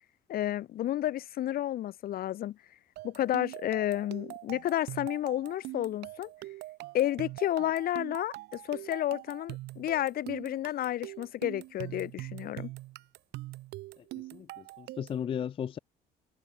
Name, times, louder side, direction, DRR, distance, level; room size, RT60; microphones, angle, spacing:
voice 1, 0.3-2.6 3.0-6.3 6.9-12.7, left 13 dB, 60° left, 1.1 m, -31 dB
sound 1, 3.0-15.3, right 18 dB, 80° right, 0.8 m, -43 dB
voice 2, 14.3-15.8, left 8 dB, 30° left, 0.4 m, -35 dB
cardioid pair, 110°, 17 cm